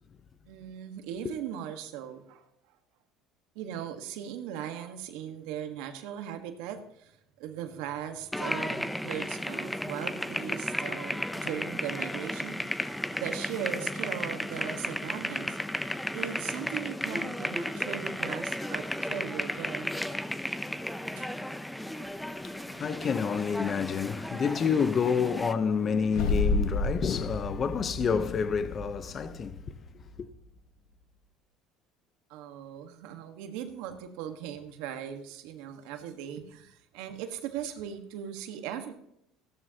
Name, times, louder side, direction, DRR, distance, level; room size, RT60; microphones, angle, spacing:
voice 1, 0.5-2.5 3.5-15.6 16.1-20.3 21.2-21.3 32.3-39.0, right 9 dB, 80° right, 1.4 m, -39 dB
sound 1, 8.3-25.5, left 1 dB, 5° left, 0.6 m, -34 dB
voice 2, 22.4-29.7 30.2-30.3, left 6 dB, 40° left, 0.8 m, -29 dB
sound 2, 26.1-30.4, left 3 dB, 65° left, 1.7 m, -31 dB
15.0 x 12.5 x 2.9 m
supercardioid pair, 100°, 0 cm